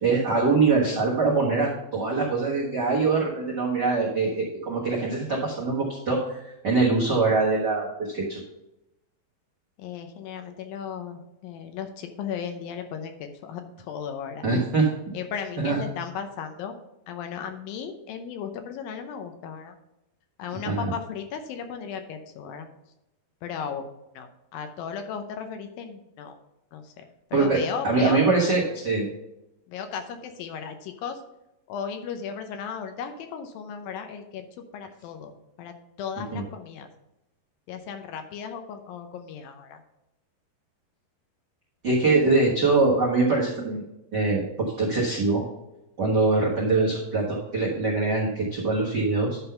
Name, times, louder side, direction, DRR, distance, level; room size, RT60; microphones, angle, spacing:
voice 1, 0.0-8.4 14.4-14.8 15.6-15.8 20.7-20.9 27.3-27.6 27.8-29.1 36.3-36.4 41.8-43.8 44.1-45.4 46.0-49.4, right 3 dB, 80° right, -4 dB, 0.9 m, -23 dB
voice 2, 9.8-14.5 15.1-16.7 17.1-19.8 20.4-22.7 23.4-23.9 24.1-26.4 26.7-28.2 29.7-31.2 31.7-34.5 34.7-35.3 35.6-36.9 37.7-39.8, left 7 dB, 75° left, 6 dB, 2.3 m, -36 dB
11.0 x 3.9 x 5.6 m, 0.90 s
omnidirectional pair, 4.5 m